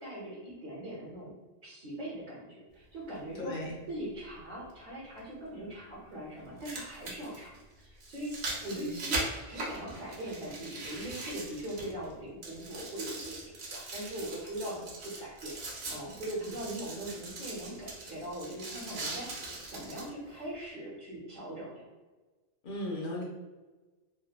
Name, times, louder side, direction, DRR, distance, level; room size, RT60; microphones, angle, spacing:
voice 1, 0.0-1.3 1.6-3.5 3.9-8.3 8.6-19.3 19.7-21.9, right 1 dB, 50° right, -6 dB, 0.6 m, -41 dB
sound 1, 3.1-3.2 5.2-5.3 6.4-12.1 12.4-20.1 20.7-20.8, right 2 dB, 90° right, 1.1 m, -40 dB
voice 2, 3.3-3.7 8.7-9.0 14.7-14.8 22.6-23.2, left 1 dB, 60° left, -3 dB, 0.6 m, -37 dB
2.7 x 2.1 x 2.2 m, 1.2 s
omnidirectional pair, 1.2 m